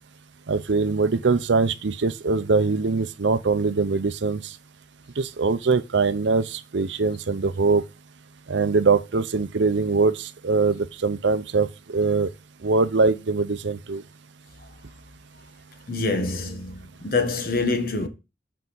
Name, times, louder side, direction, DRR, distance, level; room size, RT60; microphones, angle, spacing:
voice 1, 0.5-4.5 5.2-7.8 8.5-12.3 12.6-14.0, right 4 dB, 85° right, 0.6 m, -22 dB
voice 2, 15.9-18.1, left 3 dB, 50° left, 1.3 m, -26 dB
8.4 x 4.7 x 3.9 m
head